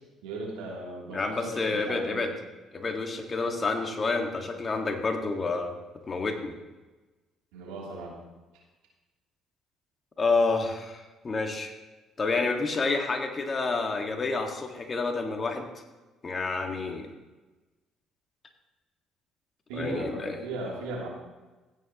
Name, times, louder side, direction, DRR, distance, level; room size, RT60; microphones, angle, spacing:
voice 1, 0.2-2.2 7.5-8.2 19.7-21.1, right 2 dB, 90° right, -3 dB, 3.1 m, -37 dB
voice 2, 1.1-2.3 2.7-5.7 6.1-6.5 10.2-11.7 12.2-15.7 16.2-17.1 19.7-20.4, left 3 dB, 35° left, 4 dB, 1.8 m, -29 dB
16.0 x 9.5 x 3.0 m, 1.2 s
supercardioid pair, 70°, 0 cm